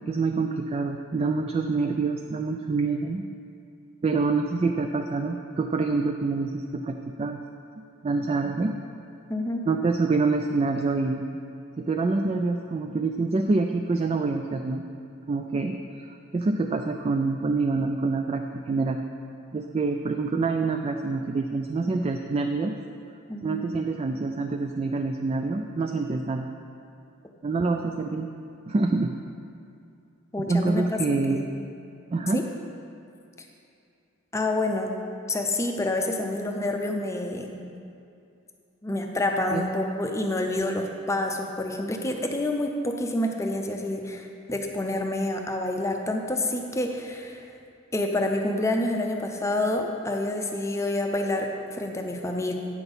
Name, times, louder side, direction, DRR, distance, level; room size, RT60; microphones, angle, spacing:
voice 1, 0.1-3.2 4.0-7.4 8.0-8.8 9.7-11.3 11.8-14.8 15.3-19.0 19.5-22.7 23.4-26.5 27.4-28.3 28.7-29.1 30.4-31.5 32.1-32.4 39.5-39.6, right 3 dB, 30° right, 4 dB, 0.3 m, -26 dB
voice 2, 9.3-9.6 23.3-23.6 30.3-31.0 31.3-31.6 32.3-32.4 34.3-34.9 35.3-37.6 38.8-47.4 47.9-52.5, left 1 dB, 15° left, 2 dB, 0.6 m, -28 dB
8.9 x 6.0 x 5.4 m, 2.5 s
head